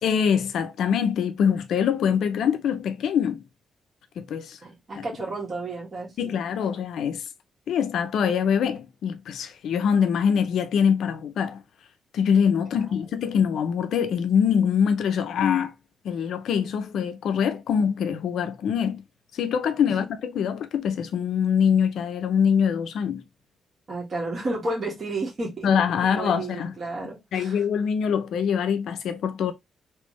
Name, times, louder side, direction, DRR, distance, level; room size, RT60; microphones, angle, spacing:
voice 1, 0.0-3.4 4.2-4.6 5.0-5.1 6.2-7.2 7.7-11.6 12.1-15.7 16.0-19.0 19.3-23.2 25.6-26.7 27.3-29.5, left 7 dB, 80° left, 0.6 m, -24 dB
voice 2, 4.6-6.3 23.9-25.7 26.1-27.6, right 2 dB, 35° right, 1.7 m, -32 dB
3.5 x 3.0 x 3.1 m
wide cardioid pair, 155°, 0 cm